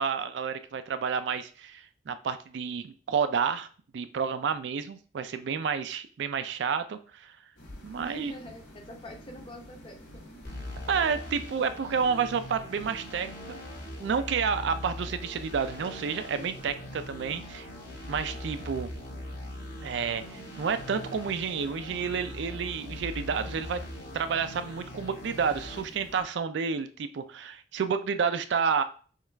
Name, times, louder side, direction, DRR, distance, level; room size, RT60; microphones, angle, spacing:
voice 1, 0.0-3.7 3.9-7.4 7.8-8.3 10.9-13.6 14.0-17.7 18.1-18.9 19.8-23.8 24.1-28.8, right 6 dB, 70° right, 10 dB, 0.4 m, -30 dB
sound 1, 7.6-26.2, equal, 90° left, 1.4 m, -50 dB
voice 2, 8.0-10.2, left 1 dB, 30° left, 2 dB, 0.8 m, -45 dB
sound 2, 10.4-25.8, left 1 dB, 55° left, 1.5 m, -41 dB
6.4 x 2.4 x 3.4 m, 0.41 s
head